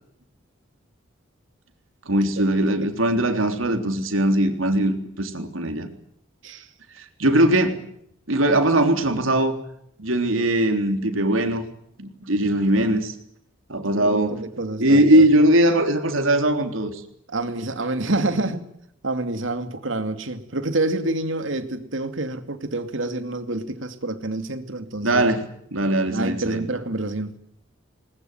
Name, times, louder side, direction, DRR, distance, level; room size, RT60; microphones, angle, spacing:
voice 1, 2.1-5.9 7.0-7.8 8.3-9.6 10.0-11.7 12.0-13.1 13.7-14.4 14.8-16.9 25.0-25.4 25.7-26.6, right 1 dB, 90° right, 3.5 m, -20 dB
voice 2, 13.9-15.2 17.3-18.7 19.0-25.3 26.1-27.4, right 2 dB, 70° right, 2.5 m, -28 dB
20.5 x 20.5 x 9.3 m
head